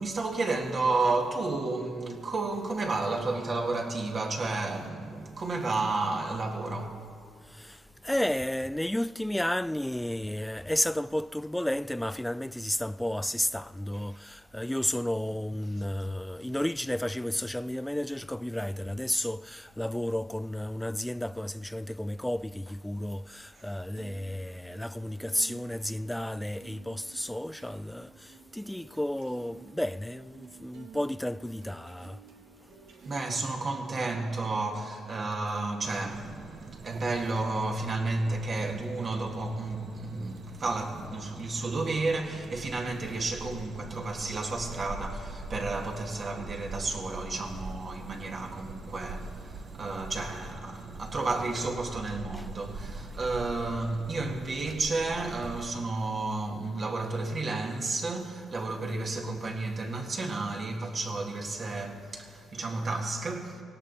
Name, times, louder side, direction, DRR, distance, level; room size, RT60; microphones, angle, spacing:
voice 1, 0.0-7.0 23.6-23.7 33.0-63.6, right 3 dB, 40° right, 1.8 m, -32 dB
voice 2, 7.4-32.2 52.3-52.5, left 1 dB, 5° left, 0.3 m, -32 dB
sound 1, 23.1-34.8, right 6 dB, 85° right, 1.7 m, -54 dB
sound 2, 35.8-55.6, right 3 dB, 65° right, 1.2 m, -43 dB
18.0 x 17.0 x 4.1 m
cardioid pair, 90°, 0 cm